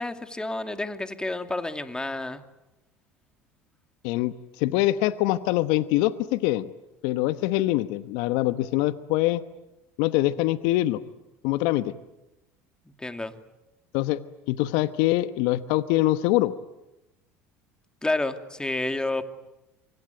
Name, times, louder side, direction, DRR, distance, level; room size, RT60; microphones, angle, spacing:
voice 1, 0.0-2.4 13.0-13.3 18.0-19.2, left 2 dB, 10° left, 8 dB, 2.6 m, -29 dB
voice 2, 4.0-6.7 7.0-9.4 10.0-11.0 11.4-11.9 13.9-14.2 14.5-16.5, left 16 dB, 70° left, 13 dB, 1.0 m, -24 dB
26.0 x 24.0 x 9.4 m, 0.96 s
hypercardioid pair, 75°, 7 cm